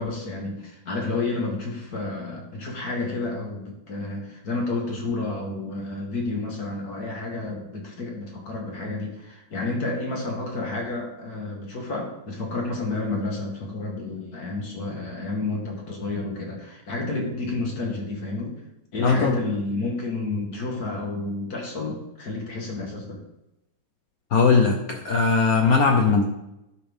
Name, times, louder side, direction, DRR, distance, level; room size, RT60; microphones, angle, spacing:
voice 1, 0.0-18.6 18.9-23.2, left 2 dB, 45° left, 0 dB, 1.9 m, -30 dB
voice 2, 19.0-19.4 24.3-26.2, left 4 dB, 70° left, 3 dB, 0.8 m, -19 dB
11.0 x 5.9 x 3.5 m, 0.91 s
omnidirectional pair, 2.4 m